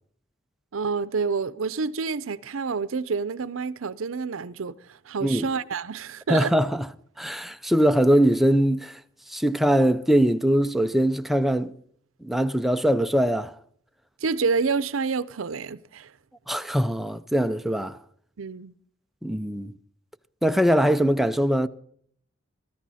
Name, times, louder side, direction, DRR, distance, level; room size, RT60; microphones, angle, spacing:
voice 1, 0.7-6.5 14.2-16.1 18.4-18.7, right 5 dB, 80° right, 0.6 m, -28 dB
voice 2, 6.3-6.9 7.2-9.0 9.3-11.7 12.2-13.5 16.5-18.0 19.2-19.7 20.4-21.7, equal, ahead, 0.5 m, -22 dB
20.0 x 14.0 x 4.2 m
head